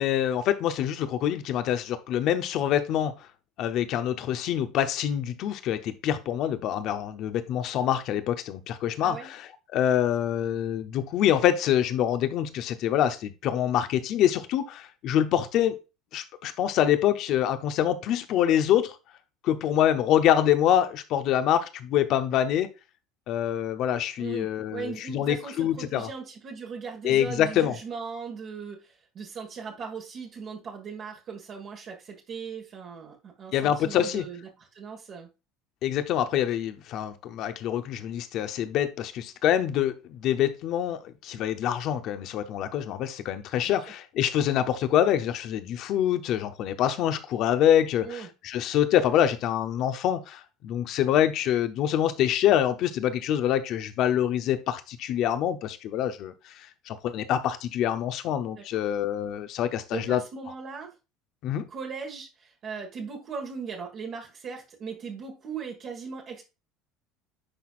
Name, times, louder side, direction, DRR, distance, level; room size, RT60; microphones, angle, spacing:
voice 1, 0.0-3.1 3.6-15.8 16.1-19.0 19.4-22.7 23.3-26.1 27.0-27.7 33.5-34.3 35.8-60.2 61.4-61.7, left 10 dB, 60° left, 0.8 m, -25 dB
voice 2, 24.2-35.3 43.6-43.8 48.0-48.3 58.6-58.8 59.9-60.9 61.7-66.4, right 5 dB, 45° right, 1.7 m, -38 dB
9.9 x 4.2 x 2.5 m
hypercardioid pair, 85°, 0 cm